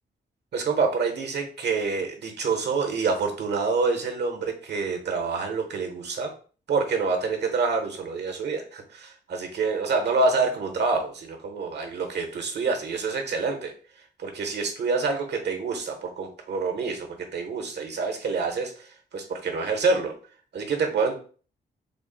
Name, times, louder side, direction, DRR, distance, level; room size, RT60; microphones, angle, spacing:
voice 1, 0.5-6.3 6.7-13.7 14.2-18.9 19.1-20.1 20.5-21.2, right 4 dB, 65° right, 5 dB, 0.8 m, -27 dB
3.7 x 2.0 x 3.8 m, 0.41 s
cardioid pair, 80°, 19 cm